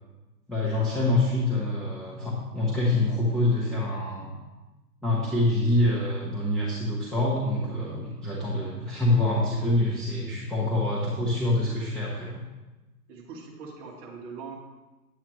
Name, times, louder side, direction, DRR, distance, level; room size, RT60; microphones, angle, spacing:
voice 1, 0.5-4.3 5.0-12.3, left 2 dB, ahead, -9 dB, 0.7 m, -26 dB
voice 2, 10.4-10.7 13.1-14.6, right 5 dB, 25° right, -1 dB, 1.5 m, -42 dB
9.0 x 8.2 x 3.1 m, 1.1 s
hypercardioid pair, 140°, 48 cm